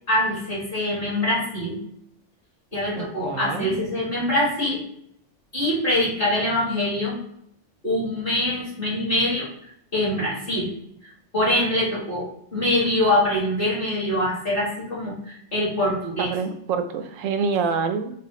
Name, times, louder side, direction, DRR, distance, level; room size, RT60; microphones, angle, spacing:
voice 1, 0.1-1.8 2.7-4.8 5.5-7.2 7.8-9.5 9.9-10.7 11.3-16.3, left 1 dB, 45° left, -5 dB, 2.1 m, -24 dB
voice 2, 3.0-3.7 16.2-18.1, right 5 dB, 90° right, 8 dB, 1.0 m, -26 dB
5.9 x 2.2 x 3.1 m, 0.69 s
omnidirectional pair, 1.3 m